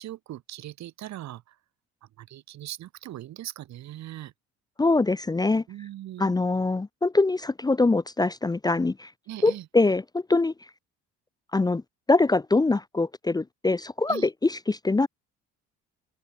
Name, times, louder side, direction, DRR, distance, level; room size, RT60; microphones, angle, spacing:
voice 1, 0.0-1.5 2.2-4.3 5.7-6.3 9.3-9.7 14.1-14.3, right 13 dB, 60° right, 2.5 m, -40 dB
voice 2, 4.8-5.6 6.2-9.1 9.4-10.5 11.5-11.8 12.1-15.1, left 3 dB, 15° left, 0.9 m, -23 dB
open air
cardioid pair, 115°, 30 cm